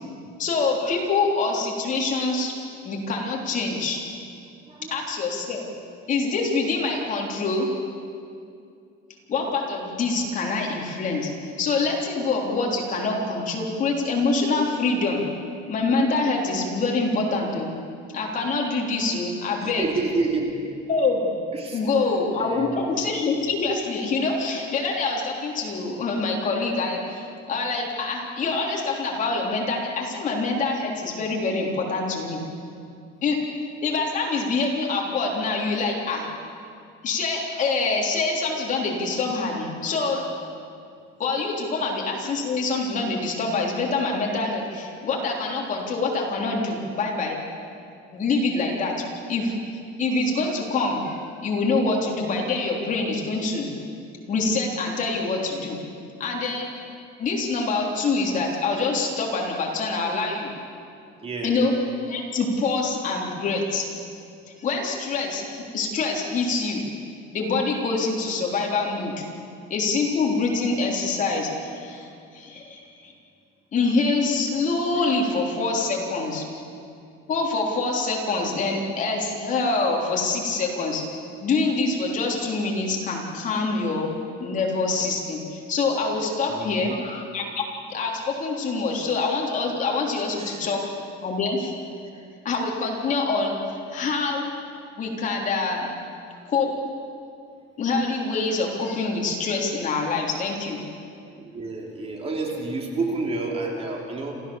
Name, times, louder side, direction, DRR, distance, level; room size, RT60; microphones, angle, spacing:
voice 1, 0.4-2.5 2.8-4.0 4.9-5.6 6.1-7.7 9.3-11.3 11.6-15.2 15.7-17.7 18.1-19.9 20.9-21.3 21.7-32.4 33.2-33.4 33.8-36.3 37.0-40.3 41.2-47.4 48.1-48.9 49.3-49.6 50.0-53.7 54.3-55.8 56.2-56.7 57.2-60.5 61.4-61.7 62.0-63.9 64.6-66.8 67.3-69.2 69.7-73.1 73.7-76.4 77.3-81.0 81.4-84.1 84.4-87.6 87.9-90.8 91.2-91.7 92.5-94.5 95.0-95.9 96.5-96.7 97.8-100.8, left 3 dB, 40° left, -1 dB, 3.5 m, -25 dB
voice 2, 4.7-5.0 19.6-20.6 21.5-21.8 22.4-22.8 61.2-61.6 86.5-86.9 90.4-90.6 92.1-92.3 101.4-104.3, right 3 dB, 30° right, 0 dB, 3.1 m, -29 dB
27.5 x 15.5 x 7.1 m, 2.4 s
cardioid pair, 155°, 21 cm